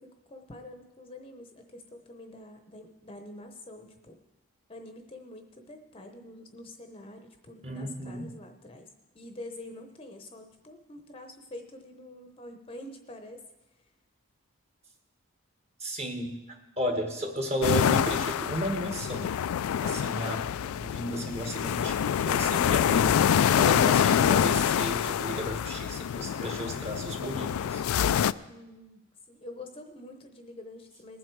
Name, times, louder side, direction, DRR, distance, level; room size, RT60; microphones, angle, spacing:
voice 1, 0.0-4.2 4.7-13.4 13.7-13.9 28.5-31.2, left 1 dB, 25° left, 5 dB, 0.8 m, -46 dB
voice 2, 7.6-8.3 15.8-19.3 19.8-23.2 23.5-27.8, equal, 30° right, 4 dB, 1.5 m, -34 dB
sound 1, 17.6-28.3, left 9 dB, 70° left, 0.3 m, -26 dB
20.5 x 7.7 x 4.7 m, 1.0 s
head